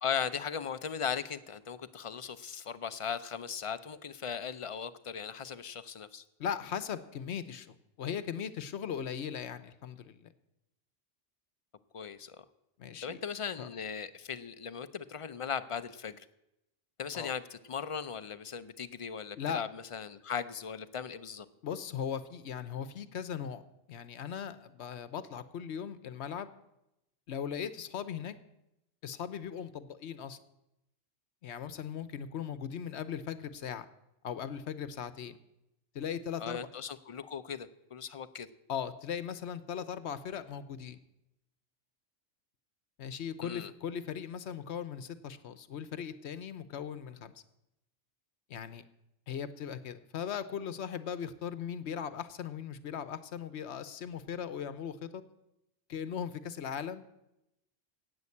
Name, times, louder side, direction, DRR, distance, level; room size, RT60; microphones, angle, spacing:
voice 1, 0.0-6.2 11.9-12.4 13.0-16.2 17.0-21.5 36.4-38.5 43.4-43.7, left 7 dB, 40° left, 12 dB, 0.4 m, -38 dB
voice 2, 6.4-10.3 12.8-13.2 13.6-13.7 17.1-17.3 19.4-19.6 21.6-23.6 23.9-26.5 27.3-28.4 29.0-30.4 31.4-33.9 34.2-35.4 35.9-36.7 38.7-41.0 43.0-47.3 48.5-48.8 49.3-55.2 55.9-57.1, left 8 dB, 70° left, 13 dB, 1.0 m, -38 dB
11.0 x 8.6 x 8.4 m, 0.88 s
omnidirectional pair, 1.2 m